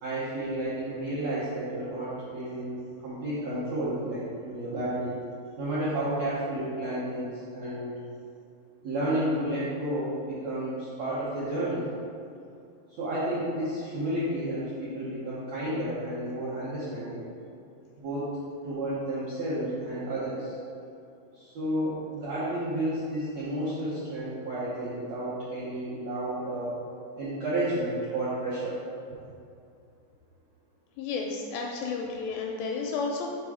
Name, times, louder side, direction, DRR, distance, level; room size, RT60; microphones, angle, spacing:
voice 1, 0.0-5.2 5.6-7.9 8.8-11.9 12.9-17.3 18.0-18.3 18.6-20.6 21.3-26.7 27.2-28.8, right 1 dB, 75° right, -10 dB, 1.6 m, -31 dB
voice 2, 31.0-33.3, left 4 dB, 80° left, 0 dB, 2.1 m, -32 dB
6.0 x 3.7 x 4.8 m, 2.6 s
omnidirectional pair, 4.4 m